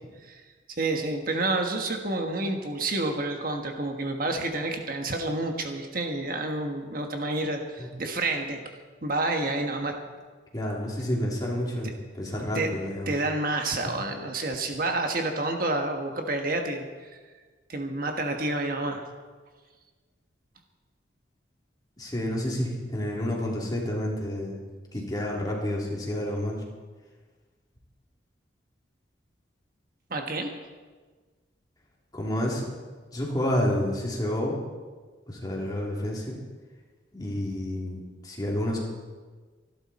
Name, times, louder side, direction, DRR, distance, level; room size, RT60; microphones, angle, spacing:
voice 1, 0.7-8.6 9.0-9.9 12.5-12.7 13.1-17.2 17.7-19.0 30.1-30.5, right 2 dB, 45° right, 3 dB, 1.4 m, -29 dB
voice 2, 10.5-13.1 22.0-24.6 24.9-26.6 32.1-32.6 33.1-34.6 35.3-36.4 37.1-38.8, left 1 dB, 20° left, -3 dB, 3.1 m, -29 dB
25.5 x 11.5 x 4.3 m, 1.4 s
head